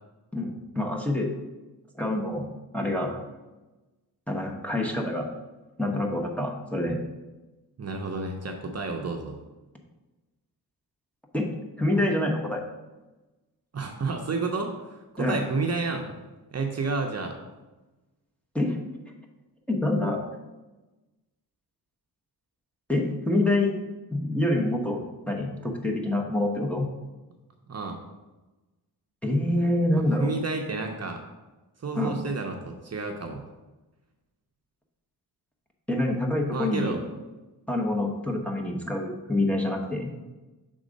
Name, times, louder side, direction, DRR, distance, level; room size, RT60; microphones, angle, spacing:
voice 1, 0.3-1.3 2.0-2.5 2.7-3.2 4.3-5.3 5.8-7.0 11.3-11.5 11.8-12.6 15.2-15.4 18.5-18.8 19.7-20.2 22.9-23.8 24.1-26.9 29.2-30.3 32.0-32.2 35.9-37.0 37.7-40.1, left 1 dB, 5° left, -1 dB, 0.9 m, -26 dB
voice 2, 7.8-9.4 13.7-16.1 16.5-17.3 27.7-28.0 29.9-31.2 31.8-33.4 36.5-37.0, right 3 dB, 40° right, 3 dB, 0.7 m, -30 dB
6.3 x 3.7 x 5.2 m, 1.1 s
wide cardioid pair, 110°, 40 cm